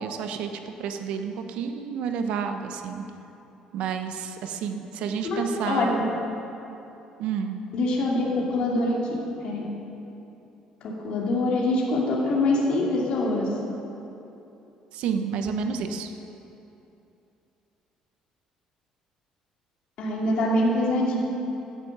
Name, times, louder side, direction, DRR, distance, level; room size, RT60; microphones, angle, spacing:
voice 1, 0.0-3.0 3.7-6.0 7.2-7.6 14.9-16.1, right 6 dB, 70° right, 6 dB, 1.0 m, -30 dB
voice 2, 5.2-6.0 7.7-9.0 9.4-9.6 10.8-13.5 20.0-21.2, left 2 dB, 50° left, -4 dB, 2.6 m, -24 dB
15.5 x 9.7 x 6.8 m, 2.9 s
cardioid pair, 165°, 2 cm